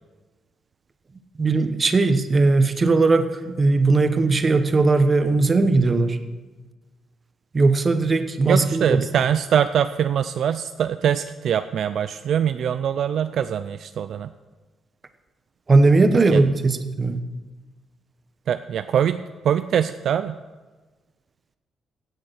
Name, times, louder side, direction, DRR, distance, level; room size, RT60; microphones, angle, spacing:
voice 1, 1.4-6.2 7.5-9.0 15.7-17.2, right 3 dB, 30° right, 9 dB, 1.1 m, -18 dB
voice 2, 8.5-14.3 16.1-16.4 18.5-20.4, right 9 dB, 65° right, 11 dB, 0.4 m, -23 dB
16.0 x 7.2 x 6.5 m, 1.3 s
cardioid pair, 90°, 0 cm